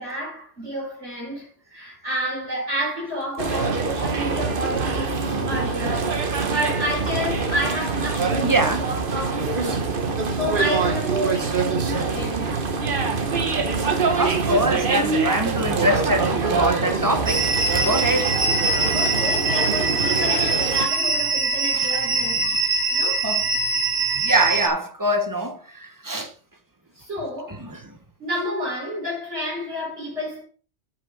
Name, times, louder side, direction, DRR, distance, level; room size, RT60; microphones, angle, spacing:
voice 1, 0.0-6.1 6.5-9.9 10.3-11.5 11.9-12.6 18.9-22.5 22.9-23.3 27.0-27.6 28.2-30.4, equal, 65° right, 5.1 m, -30 dB
sound 1, 3.4-20.9, right 4 dB, 45° right, 1.3 m, -24 dB
voice 2, 8.4-8.9 14.2-17.5 17.8-18.3 21.7-21.9 22.4-22.6 23.2-23.4 24.2-26.3 27.6-27.8, right 1 dB, 15° right, 1.1 m, -24 dB
sound 2, 17.3-24.7, right 3 dB, 85° right, 1.8 m, -23 dB
8.5 x 6.4 x 5.2 m
omnidirectional pair, 1.2 m